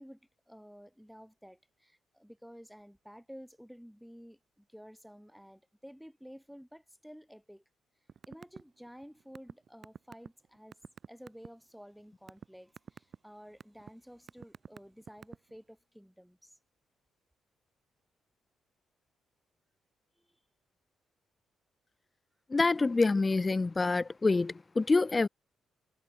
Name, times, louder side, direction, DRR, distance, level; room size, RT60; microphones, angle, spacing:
voice 1, 0.0-7.6 8.3-10.8 11.1-16.6 20.2-20.4, equal, ahead, 3.1 m, -52 dB
sound 1, 8.1-8.6 8.9-11.5 12.0-12.5 12.8-13.2 13.6-13.9 14.3-15.6, right 7 dB, 50° right, 3.6 m, -46 dB
voice 2, 22.5-25.3, left 3 dB, 25° left, 0.4 m, -26 dB
cardioid pair, 90°, 0 cm